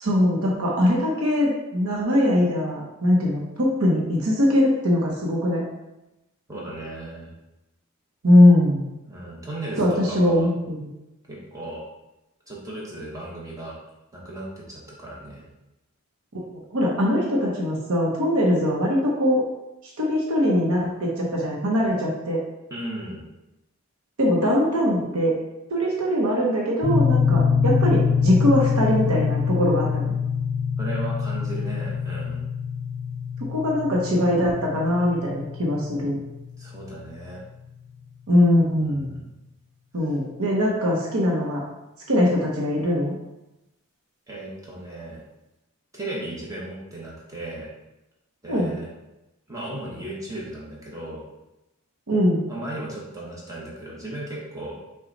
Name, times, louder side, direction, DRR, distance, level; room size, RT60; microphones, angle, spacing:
voice 1, 0.0-5.6 8.2-8.8 9.8-10.9 16.3-16.4 16.7-19.4 20.0-22.4 24.2-25.4 25.7-30.2 33.5-36.2 38.3-39.2 39.9-41.6 42.1-43.1 48.5-48.7 52.1-52.4, left 1 dB, 75° right, -3 dB, 0.9 m, -21 dB
voice 2, 6.5-7.3 9.1-10.5 11.3-11.8 12.5-13.8 14.1-15.5 22.7-23.3 30.8-32.4 36.6-37.4 38.8-39.3 44.3-45.2 45.9-47.7 48.4-48.9 49.5-51.2 52.5-54.8, right 1 dB, 15° right, -5 dB, 1.0 m, -35 dB
sound 1, 26.8-37.0, left 6 dB, 35° right, 1.4 m, -25 dB
5.9 x 2.3 x 3.9 m, 0.96 s
head